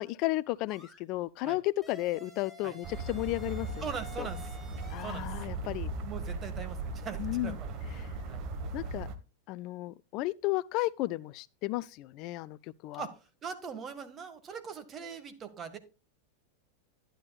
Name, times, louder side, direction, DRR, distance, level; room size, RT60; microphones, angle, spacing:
voice 1, 0.0-3.7 4.2-4.3 4.9-5.9 7.2-7.6 8.0-8.1 8.7-9.1 9.5-12.6 12.8-13.1, left 18 dB, 50° left, 0.4 m, -33 dB
sound 1, 0.7-1.0 1.8-5.3, left 2 dB, ahead, 5.8 m, -51 dB
sound 2, 2.8-9.2, right 3 dB, 45° right, 1.3 m, -38 dB
voice 2, 3.8-4.5 5.0-5.3 6.0-8.4 13.0-15.8, right 6 dB, 30° right, 1.8 m, -41 dB
11.5 x 10.0 x 2.4 m
hypercardioid pair, 95°, 0 cm